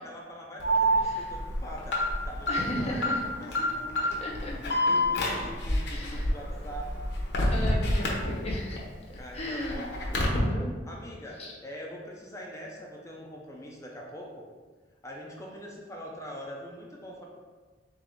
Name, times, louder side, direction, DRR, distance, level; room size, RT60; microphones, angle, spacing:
voice 1, 0.0-4.1 4.6-7.1 9.2-10.3 10.8-14.3 15.0-17.2, equal, 15° left, -2 dB, 0.5 m, -43 dB
Alarm, 0.6-8.8 9.2-10.4, equal, 65° left, 0.8 m, -28 dB
voice 2, 2.5-3.2 4.2-4.6 5.9-6.3 7.5-8.8 9.3-9.8 10.2-10.7 11.4-11.5, equal, 35° left, -2 dB, 0.8 m, -35 dB
3.7 x 3.5 x 3.4 m, 1.4 s
head